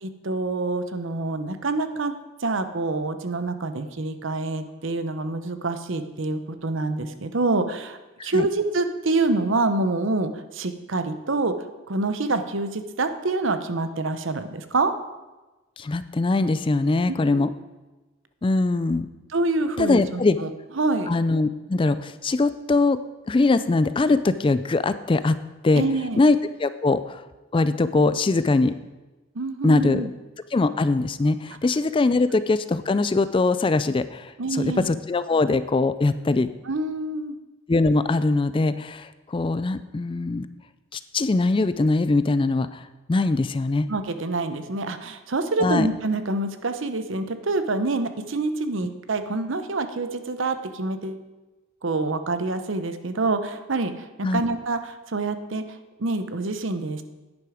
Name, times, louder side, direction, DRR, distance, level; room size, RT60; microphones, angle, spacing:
voice 1, 0.0-2.1 2.4-11.5 11.9-14.9 17.1-17.5 19.3-20.5 20.8-21.1 25.8-26.2 29.3-30.1 34.4-34.9 36.6-37.4 43.9-51.2 51.8-55.6 56.0-57.0, right 3 dB, 65° right, 10 dB, 0.8 m, -26 dB
voice 2, 15.8-17.5 18.4-19.1 19.8-20.4 21.1-23.0 23.3-25.4 25.6-25.8 26.2-27.2 27.5-28.7 29.6-30.0 30.5-36.5 37.7-40.5 40.9-42.8 43.1-43.9 45.6-45.9 54.2-54.4, left 3 dB, 25° left, 13 dB, 0.3 m, -22 dB
10.5 x 9.7 x 5.0 m, 1.1 s
head